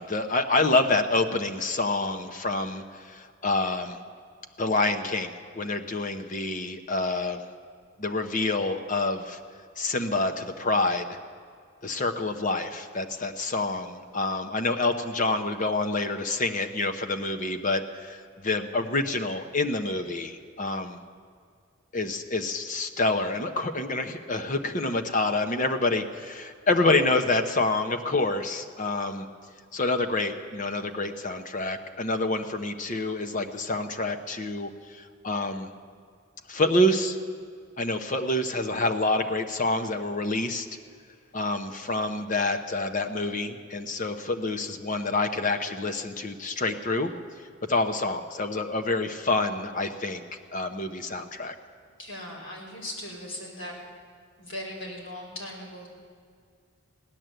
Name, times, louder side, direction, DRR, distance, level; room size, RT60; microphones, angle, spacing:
voice 1, 0.0-4.0 4.6-7.4 8.0-9.4 9.8-11.2 11.8-21.0 21.9-29.3 29.7-35.7 36.5-37.2 37.8-40.7 41.3-47.1 47.7-51.5, left 2 dB, 40° left, 7 dB, 0.8 m, -27 dB
voice 2, 52.0-53.7 54.4-55.9, left 1 dB, 60° left, -3 dB, 3.9 m, -38 dB
16.5 x 10.5 x 7.8 m, 2.1 s
head